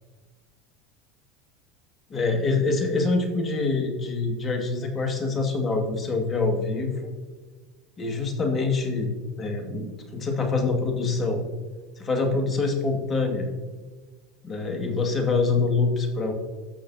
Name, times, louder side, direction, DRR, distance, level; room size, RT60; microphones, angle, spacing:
voice 1, 2.1-7.1 8.0-9.1 9.4-11.4 12.0-13.5 14.4-16.3, left 3 dB, 30° left, 3 dB, 2.0 m, -25 dB
15.5 x 6.2 x 2.8 m, 1.4 s
hypercardioid pair, 90°, 0 cm